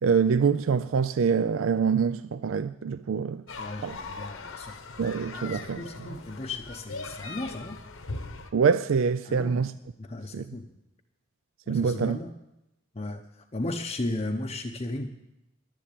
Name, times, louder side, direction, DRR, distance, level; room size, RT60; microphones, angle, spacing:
voice 1, 0.0-3.4 3.8-4.0 5.0-5.8 8.5-9.7 10.3-10.4 11.7-12.2, right 6 dB, 65° right, 0.4 m, -25 dB
sound 1, 3.5-8.5, left 3 dB, 70° left, 1.1 m, -40 dB
voice 2, 3.6-7.8 9.2-9.6 10.0-10.7 11.7-12.3 12.9-15.1, left 2 dB, 30° left, 0.7 m, -36 dB
11.0 x 10.5 x 8.4 m
head